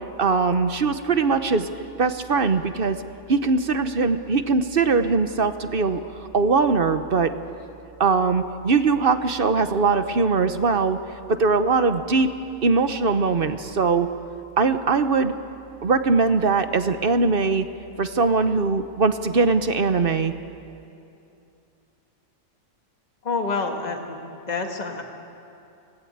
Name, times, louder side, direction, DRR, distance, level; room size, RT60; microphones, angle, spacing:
voice 1, 0.2-1.7 2.0-3.0 3.3-6.0 6.3-7.3 8.0-11.0 11.3-12.3 12.6-14.1 14.6-15.3 15.8-17.6 18.0-20.3, right 4 dB, 45° right, 10 dB, 1.0 m, -21 dB
voice 2, 23.2-25.0, left 4 dB, 30° left, 3 dB, 1.8 m, -28 dB
25.5 x 18.5 x 8.8 m, 2.7 s
omnidirectional pair, 1.4 m